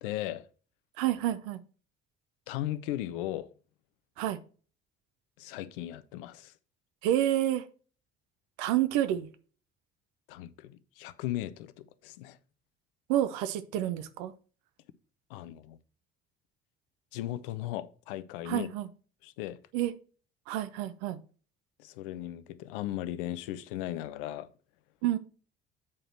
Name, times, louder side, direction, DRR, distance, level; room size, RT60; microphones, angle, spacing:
voice 1, 0.0-0.5 2.5-3.5 5.4-6.5 10.3-12.4 15.3-15.8 17.1-18.7 19.2-19.6 21.8-24.5, left 14 dB, 65° left, 0.7 m, -37 dB
voice 2, 1.0-1.6 4.2-4.4 7.0-7.6 8.6-9.3 13.1-14.3 18.5-18.9 19.7-19.9 20.5-21.2 25.0-25.2, right 12 dB, 60° right, 0.8 m, -29 dB
8.5 x 4.9 x 4.3 m
figure-of-eight pair, 55°, 30 cm